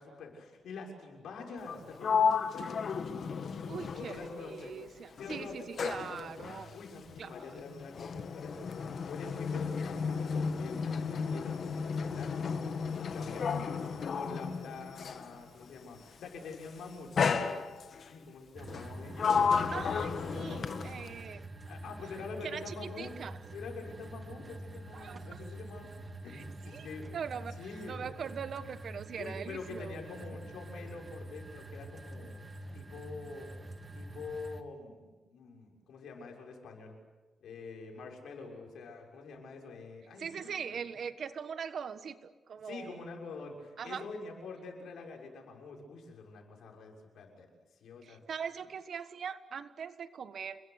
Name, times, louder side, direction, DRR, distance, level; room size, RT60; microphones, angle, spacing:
voice 1, 0.0-2.8 3.9-4.7 5.2-6.3 6.7-12.5 13.0-17.6 18.0-19.6 21.7-23.1 23.5-25.9 26.2-27.1 27.6-28.1 29.2-32.4 32.7-33.5 33.9-37.0 37.4-40.8 42.6-47.5 47.8-48.2, left 4 dB, 80° left, 1 dB, 6.4 m, -46 dB
Sliding door, 1.6-4.9 5.2-15.3 16.2-16.5 17.2-18.1 18.7-21.2, left 6 dB, 55° left, 1.8 m, -33 dB
voice 2, 3.7-6.8 7.2-7.3 13.5-13.7 19.7-21.5 22.4-23.4 24.9-25.4 26.3-26.4 26.7-27.6 27.9-30.2 40.2-43.0 43.8-44.0 48.0-50.6, right 7 dB, 60° right, 12 dB, 1.4 m, -41 dB
sound 1, 18.5-34.6, right 1 dB, 25° right, 1.8 m, -46 dB
29.5 x 21.5 x 8.2 m, 1.3 s
cardioid pair, 115°, 0 cm